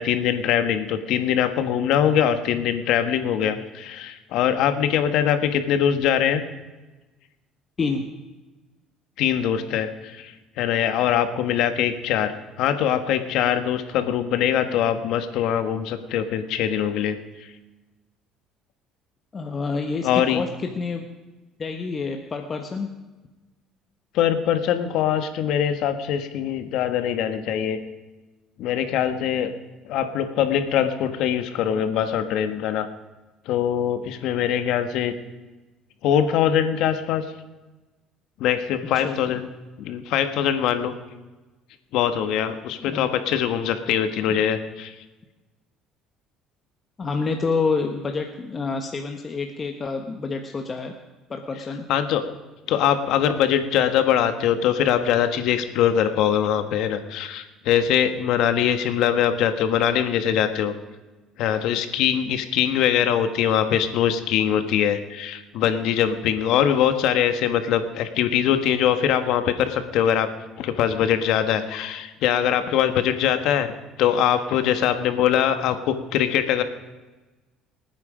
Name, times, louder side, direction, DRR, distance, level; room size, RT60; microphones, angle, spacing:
voice 1, 0.0-6.4 9.2-17.5 20.0-20.4 24.1-27.8 28.6-29.5 29.8-32.9 33.4-35.1 36.0-37.3 38.4-39.5 39.8-40.9 41.9-45.0 51.9-52.3 52.7-60.7 61.4-70.3 70.6-73.7 74.0-76.6, left 9 dB, 70° left, 9 dB, 1.5 m, -22 dB
voice 2, 7.8-8.1 19.3-21.1 21.6-22.9 39.0-39.4 42.8-43.1 47.0-50.9 51.3-51.9, left 4 dB, 30° left, 4 dB, 1.3 m, -28 dB
27.0 x 9.5 x 5.1 m, 1.2 s
cardioid pair, 100°, 0 cm